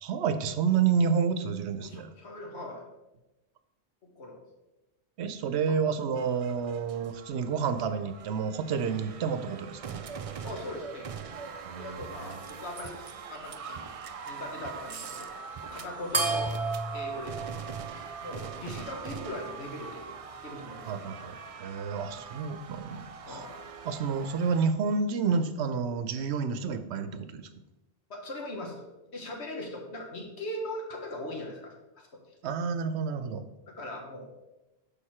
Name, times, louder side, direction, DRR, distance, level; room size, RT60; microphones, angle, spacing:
voice 1, 0.0-2.1 5.2-10.0 11.6-12.0 12.3-12.4 20.9-23.4 23.9-27.5 32.4-33.5, right 6 dB, 80° right, 10 dB, 0.9 m, -29 dB
voice 2, 1.8-2.9 4.0-4.4 5.7-6.0 10.3-11.1 11.8-13.9 14.2-15.3 15.6-16.6 16.9-17.6 17.9-21.1 22.0-22.2 23.3-23.6 28.1-28.8 29.1-32.3 33.7-34.3, left 1 dB, 80° left, 0 dB, 1.6 m, -40 dB
sound 1, 6.2-24.7, right 6 dB, 60° right, 0.3 m, -42 dB
sound 2, 16.1-18.9, right 3 dB, 30° right, 0.7 m, -33 dB
6.5 x 5.2 x 4.3 m, 0.99 s
omnidirectional pair, 1.1 m